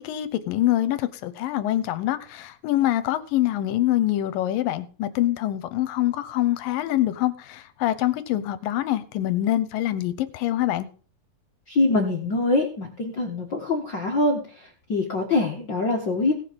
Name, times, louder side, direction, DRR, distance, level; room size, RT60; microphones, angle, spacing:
voice 1, 0.0-10.9, left 14 dB, 75° left, 2.4 m, -25 dB
voice 2, 11.7-16.3, left 2 dB, 45° left, 1.6 m, -24 dB
17.5 x 5.8 x 6.9 m
omnidirectional pair, 4.2 m